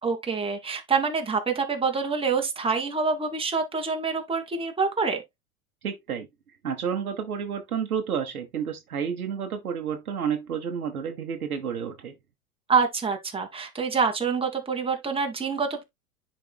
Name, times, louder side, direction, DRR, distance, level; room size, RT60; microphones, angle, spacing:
voice 1, 0.0-5.2 12.7-15.8, right 5 dB, 10° right, 1.8 m, -26 dB
voice 2, 5.8-6.3 6.6-12.1, right 7 dB, 90° right, 1.0 m, -30 dB
10.5 x 4.1 x 2.2 m
hypercardioid pair, 90°, 43 cm